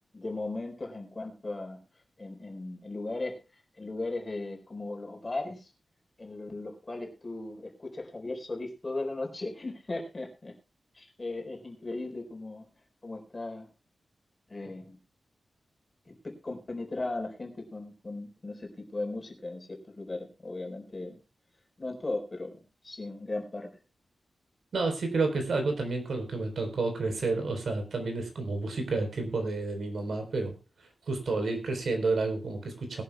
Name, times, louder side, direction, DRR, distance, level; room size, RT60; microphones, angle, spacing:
voice 1, 0.1-1.8 2.2-3.4 3.8-5.7 6.2-10.5 10.9-12.7 13.0-13.7 14.5-15.0 16.1-21.2 21.8-23.7, left 2 dB, 25° left, 2 dB, 4.3 m, -37 dB
voice 2, 24.7-30.6 31.1-33.0, right 3 dB, 65° right, 5 dB, 3.9 m, -30 dB
21.0 x 11.5 x 2.3 m, 0.31 s
wide cardioid pair, 150°, 0 cm